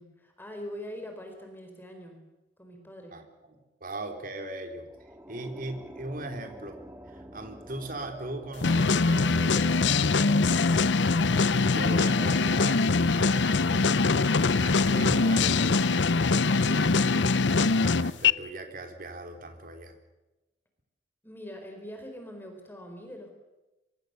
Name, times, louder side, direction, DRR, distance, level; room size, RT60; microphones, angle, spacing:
voice 1, 0.0-2.2 2.6-3.2 21.2-23.3, equal, 10° left, 4 dB, 4.0 m, -43 dB
voice 2, 3.1-6.8 7.1-10.7 11.5-14.3 14.6-19.9, right 2 dB, 50° right, 5 dB, 3.6 m, -39 dB
sound 1, 4.8-17.4, right 1 dB, 10° right, 2.0 m, -48 dB
sound 2, 8.6-18.3, left 4 dB, 70° left, 0.7 m, -23 dB
24.5 x 23.5 x 6.8 m, 1.0 s
head